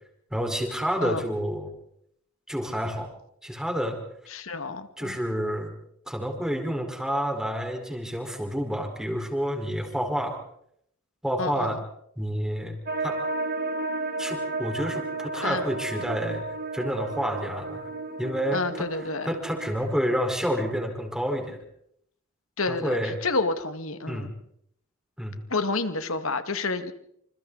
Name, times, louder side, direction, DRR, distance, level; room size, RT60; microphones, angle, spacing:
voice 1, 0.3-1.7 2.5-3.1 3.4-4.0 5.0-5.7 6.1-10.4 11.2-11.8 12.2-12.8 13.0-13.2 14.2-16.4 16.7-17.8 18.2-18.9 19.3-21.6 22.7-23.2 24.1-24.3 25.2-25.4, equal, 5° right, 2 dB, 5.0 m, -29 dB
voice 2, 4.3-5.2 11.4-11.8 15.4-15.6 18.5-19.3 22.6-23.0 23.2-24.3 25.5-26.9, left 3 dB, 85° left, 9 dB, 2.1 m, -29 dB
sound 1, 12.9-20.9, right 2 dB, 50° right, 1.7 m, -33 dB
28.0 x 27.5 x 4.2 m, 0.72 s
head